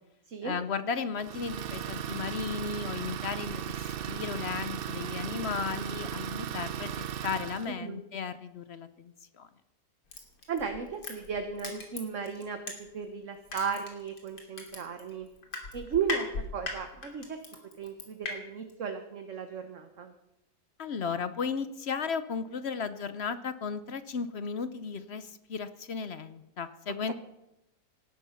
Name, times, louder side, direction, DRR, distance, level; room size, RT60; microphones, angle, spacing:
voice 1, 0.4-9.5 20.8-27.1, left 5 dB, 55° left, 13 dB, 0.8 m, -35 dB
Idling, 1.2-7.7, right 9 dB, 75° right, 0.5 m, -36 dB
voice 2, 7.7-8.0 10.5-12.6 12.9-15.3 15.7-17.4 17.8-20.1 27.1-27.2, right 6 dB, 50° right, 6 dB, 1.4 m, -35 dB
Crushing, 10.1-13.1 13.5-18.3 18.7-18.8, left 3 dB, 85° left, 3.3 m, -38 dB
18.0 x 12.0 x 5.7 m, 0.91 s
omnidirectional pair, 1.7 m